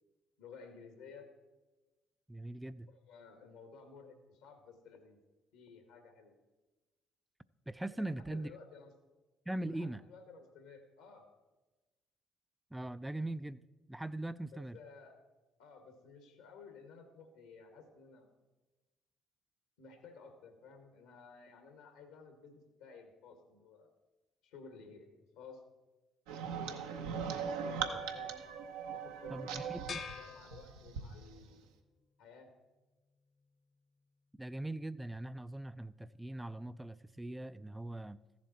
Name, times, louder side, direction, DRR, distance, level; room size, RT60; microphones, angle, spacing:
voice 1, 0.4-1.3 2.9-5.2 5.5-6.3 7.9-8.9 9.6-11.3 14.5-15.2 15.6-18.3 19.8-23.9 24.4-25.1 25.3-25.6 26.4-28.5 28.9-31.7 32.2-32.5, left 5 dB, 80° left, 6 dB, 1.8 m, -54 dB
voice 2, 2.3-2.9 7.7-8.5 9.5-10.0 12.7-13.6 13.9-14.8 29.3-30.0 34.4-38.2, right 1 dB, 10° right, 14 dB, 0.3 m, -41 dB
sound 1, 26.3-31.1, right 6 dB, 80° right, 0.8 m, -40 dB
sound 2, 29.9-31.4, left 6 dB, 55° left, 1.1 m, -46 dB
14.0 x 7.3 x 4.2 m, 1.2 s
hypercardioid pair, 60°, 0 cm